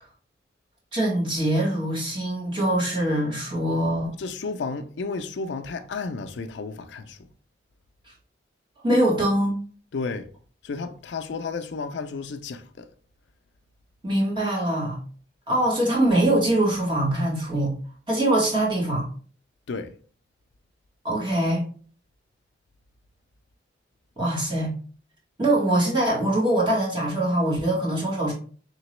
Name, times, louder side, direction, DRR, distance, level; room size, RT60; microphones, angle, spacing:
voice 1, 0.9-4.1 8.8-9.6 14.0-15.0 15.5-17.8 18.1-19.0 21.0-21.6 24.2-24.7 25.4-28.3, right 1 dB, 25° right, 1.4 m, -23 dB
voice 2, 4.2-7.2 9.9-10.3 10.6-12.9 19.7-19.9, left 4 dB, 85° left, 0.4 m, -32 dB
3.9 x 2.9 x 3.1 m
head